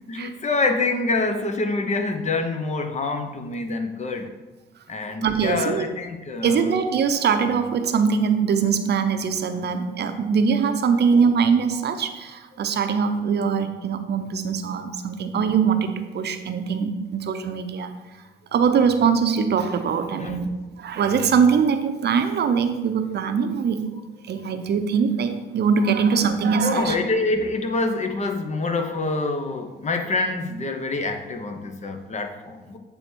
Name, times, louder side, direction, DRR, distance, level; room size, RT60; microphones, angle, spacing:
voice 1, 0.1-4.3 4.9-6.8 20.2-20.4 26.6-32.8, left 3 dB, 35° left, 6 dB, 0.8 m, -26 dB
voice 2, 5.2-5.8 6.4-17.9 18.5-20.5 20.8-23.9 24.3-26.9, right 6 dB, 55° right, 8 dB, 0.6 m, -22 dB
8.1 x 3.5 x 4.4 m, 1.1 s
cardioid pair, 90°, 20 cm